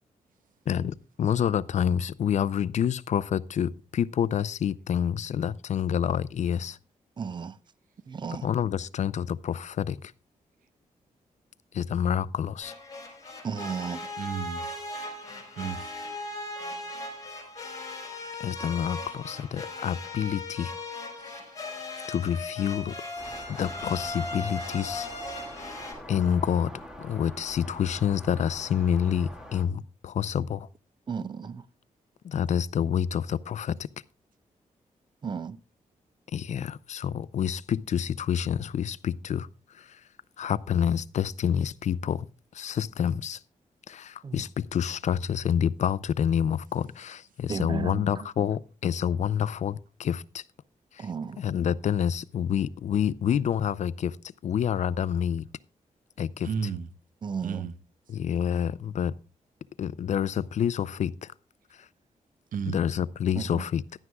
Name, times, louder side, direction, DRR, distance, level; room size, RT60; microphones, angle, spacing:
voice 1, 0.7-6.8 8.3-10.0 11.7-12.7 18.4-20.7 22.1-23.0 23.6-25.1 25.3-25.5 26.1-26.7 27.0-30.7 32.2-33.9 36.3-39.5 39.7-40.0 40.4-42.3 42.5-43.4 43.9-50.2 50.9-51.1 51.4-54.2 54.4-55.5 56.2-56.5 58.1-59.1 59.8-61.3 61.8-61.9 62.7-63.8, left 8 dB, 60° left, 0.5 m, -28 dB
voice 2, 7.2-7.6 8.1-8.5 13.4-14.0 31.1-31.6 35.2-35.6 44.2-44.4 47.5-48.3 51.0-51.4 57.2-57.7 63.4-63.6, right 6 dB, 35° right, 0.5 m, -34 dB
sound 1, 12.6-25.9, left 2 dB, 25° left, 5.2 m, -38 dB
voice 3, 14.2-14.7 15.6-15.9 21.2-21.5 56.4-56.9 57.4-57.7 62.5-62.8, right 6 dB, 85° right, 0.8 m, -33 dB
sound 2, 23.2-29.7, left 1 dB, 5° right, 1.7 m, -45 dB
16.0 x 11.0 x 2.3 m
wide cardioid pair, 155°, 14 cm